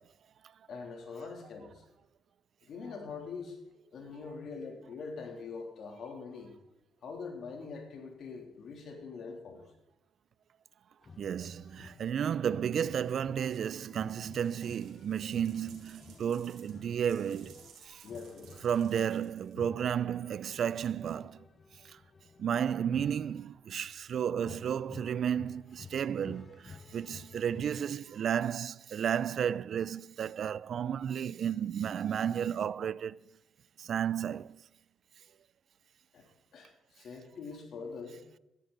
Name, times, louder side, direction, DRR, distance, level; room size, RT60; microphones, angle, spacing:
voice 1, 0.7-1.8 2.6-3.6 3.9-6.5 7.0-9.6 18.0-18.6 36.1-38.3, left 4 dB, 65° left, 3.1 m, -43 dB
sound 1, 11.0-23.9 24.4-27.9, left 5 dB, 35° left, 0.7 m, -53 dB
voice 2, 11.2-18.0 18.6-21.4 21.9-22.0 22.4-33.2 33.8-34.6, right 8 dB, 60° right, 0.4 m, -33 dB
sound 2, 14.2-19.8, right 6 dB, 80° right, 3.2 m, -59 dB
15.5 x 13.0 x 4.0 m
cardioid pair, 90°, 0 cm